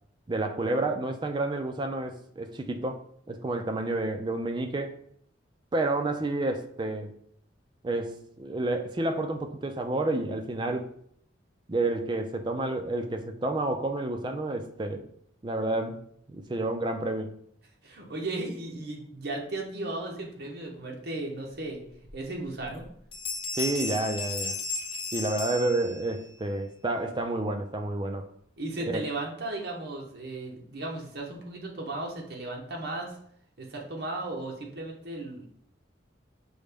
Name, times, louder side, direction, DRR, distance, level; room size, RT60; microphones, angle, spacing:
voice 1, 0.3-3.0 3.3-4.9 5.7-7.1 7.8-10.9 11.7-15.0 15.4-16.0 16.3-17.3 23.6-24.6 25.1-28.3 28.8-29.0, right 2 dB, 25° right, 0.4 m, -30 dB
voice 2, 17.8-21.8 22.1-22.9 28.6-33.2 33.6-35.5, right 2 dB, 55° right, 0.9 m, -35 dB
sound 1, 22.1-22.2 22.6-22.9 23.1-26.3, left 4 dB, 30° left, 0.7 m, -34 dB
6.2 x 2.1 x 3.4 m
head